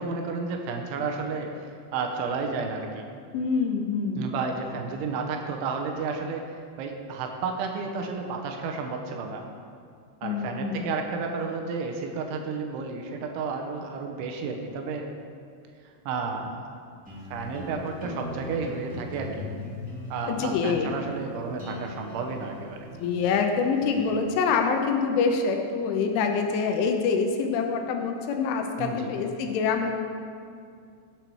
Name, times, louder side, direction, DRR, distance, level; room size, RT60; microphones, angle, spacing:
voice 1, 0.0-1.7 1.9-3.1 4.2-6.5 6.8-9.4 10.2-15.1 16.1-16.6 17.3-19.5 20.1-22.9 28.8-29.1, right 4 dB, 80° right, 3 dB, 3.2 m, -32 dB
voice 2, 3.3-4.4 10.2-10.9 20.3-20.9 23.0-29.9, left 5 dB, 80° left, 4 dB, 3.2 m, -26 dB
sound 1, 17.0-24.2, left 1 dB, 5° right, 1.5 m, -40 dB
16.0 x 8.1 x 4.6 m, 2.4 s
omnidirectional pair, 5.7 m